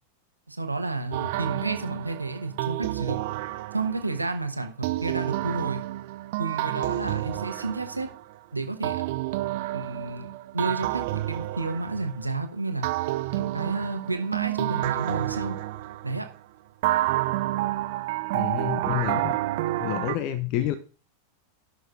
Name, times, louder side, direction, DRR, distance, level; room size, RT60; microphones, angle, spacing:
voice 1, 0.5-3.2 3.7-5.8 6.4-8.1 8.5-9.0 9.7-10.3 10.5-12.9 13.3-15.6 16.0-16.3, right 3 dB, 85° right, 6 dB, 1.2 m, -31 dB
sound 1, 1.1-4.2 4.8-8.4 8.8-12.4 12.8-16.3 16.8-20.2, right 16 dB, 50° right, 0.5 m, -29 dB
voice 2, 18.3-19.4 19.8-20.7, left 12 dB, 40° left, 13 dB, 0.6 m, -29 dB
17.5 x 6.3 x 2.5 m, 0.37 s
figure-of-eight pair, 90°, 0 cm